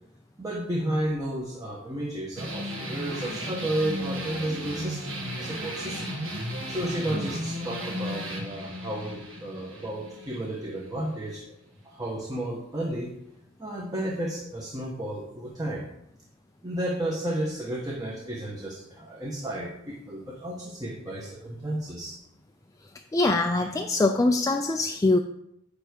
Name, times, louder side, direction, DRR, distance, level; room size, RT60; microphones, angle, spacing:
voice 1, 0.4-6.1 6.7-11.4 11.8-13.1 13.6-15.9 16.6-22.2, right 1 dB, 20° right, -2 dB, 1.1 m, -32 dB
sound 1, 2.4-11.4, equal, 70° right, 1.7 m, -35 dB
voice 2, 23.1-25.2, left 2 dB, 15° left, 4 dB, 0.4 m, -23 dB
9.8 x 3.5 x 6.4 m, 0.78 s
head